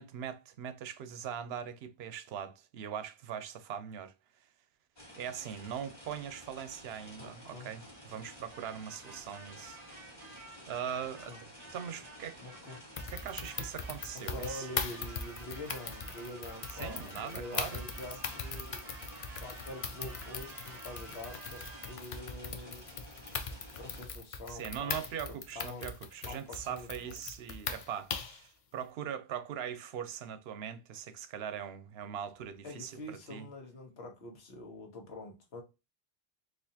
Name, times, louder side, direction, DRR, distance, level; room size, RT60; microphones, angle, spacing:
voice 1, 0.0-4.1 5.2-9.8 10.7-12.4 13.1-14.7 16.7-17.8 24.5-33.5, right 8 dB, 80° right, 0.8 m, -41 dB
sound 1, 5.0-24.1, equal, 25° left, 1.4 m, -52 dB
voice 2, 7.2-7.7 11.3-11.4 12.4-12.8 14.1-18.8 19.4-22.8 23.8-25.1 25.5-25.9 26.2-27.1 32.6-35.6, left 1 dB, 85° left, 1.3 m, -45 dB
sound 2, 8.5-22.2, right 3 dB, 50° right, 0.6 m, -52 dB
sound 3, 13.0-28.4, left 5 dB, 50° left, 0.4 m, -40 dB
4.1 x 2.5 x 2.7 m
omnidirectional pair, 1.0 m